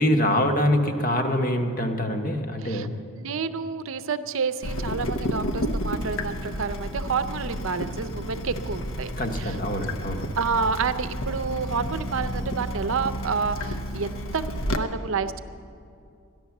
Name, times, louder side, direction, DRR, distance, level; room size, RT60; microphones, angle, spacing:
voice 1, 0.0-3.0 9.2-10.3, left 1 dB, 40° left, 6 dB, 0.9 m, -24 dB
voice 2, 3.2-9.1 9.3-9.6 10.4-15.4, right 5 dB, 70° right, 12 dB, 0.6 m, -29 dB
Water tap faucet / Drip, 4.6-14.8, equal, 70° left, 0.8 m, -31 dB
14.0 x 10.5 x 7.1 m, 2.4 s
head